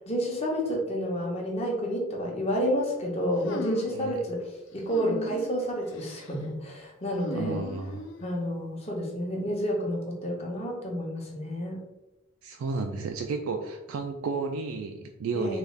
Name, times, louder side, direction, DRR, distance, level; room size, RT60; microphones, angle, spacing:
voice 1, 0.1-4.4 4.7-7.6 8.2-11.8 15.3-15.6, equal, 30° left, -1 dB, 0.8 m, -30 dB
sound 1, 3.4-4.1 4.9-5.5 5.9-6.3 7.2-8.3, left 2 dB, 60° left, 0.4 m, -37 dB
voice 2, 7.3-8.0 12.4-15.6, right 4 dB, 80° right, 3 dB, 0.3 m, -32 dB
3.9 x 2.4 x 3.2 m, 1.0 s
head